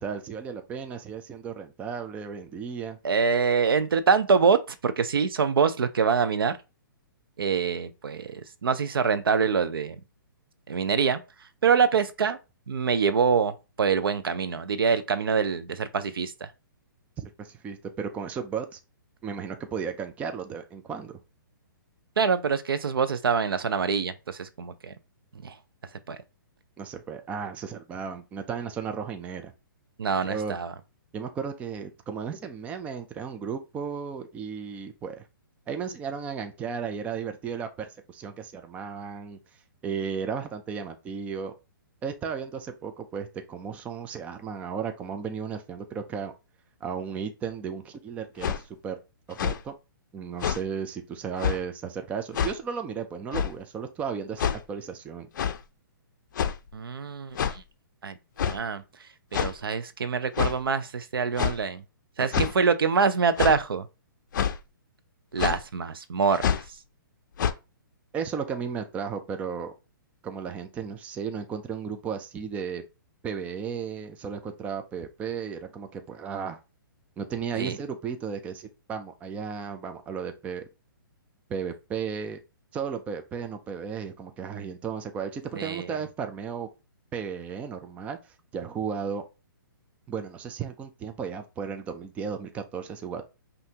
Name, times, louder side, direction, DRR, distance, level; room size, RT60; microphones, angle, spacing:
voice 1, 0.0-3.0 17.2-18.8 19.2-21.2 26.8-29.5 30.2-30.6 31.1-35.2 35.7-39.4 39.8-41.5 42.0-46.3 46.8-49.0 49.3-49.7 50.1-55.3 62.3-62.5 68.1-69.7 70.2-72.8 73.2-76.6 77.2-80.6 81.5-82.4 82.7-86.7 87.1-89.2 90.1-93.2, right 6 dB, 10° right, 0.4 m, -34 dB
voice 2, 3.0-6.6 7.4-10.0 10.7-11.2 11.6-12.4 12.7-16.5 22.2-24.9 25.4-25.6 26.1-26.2 30.0-30.7 56.7-57.6 58.0-58.2 58.4-58.8 59.3-61.8 62.2-63.9 65.3-66.4 77.6-77.8 85.5-85.9, right 5 dB, 85° right, 0.7 m, -25 dB
sound 1, 48.4-48.6 49.3-49.6 50.4-50.6 51.4-51.6 52.3-52.6 53.3-53.6 54.4-54.6 55.3-55.6 56.3-56.7 57.3-57.6 58.4-58.6 59.3-59.5 60.3-60.6 61.4-61.6 62.3-62.5 63.4-63.6 64.3-64.6 65.4-65.6 66.3-66.7 67.4-67.5, left 8 dB, 60° left, 0.5 m, -26 dB
5.7 x 2.6 x 2.8 m
hypercardioid pair, 145°, 12 cm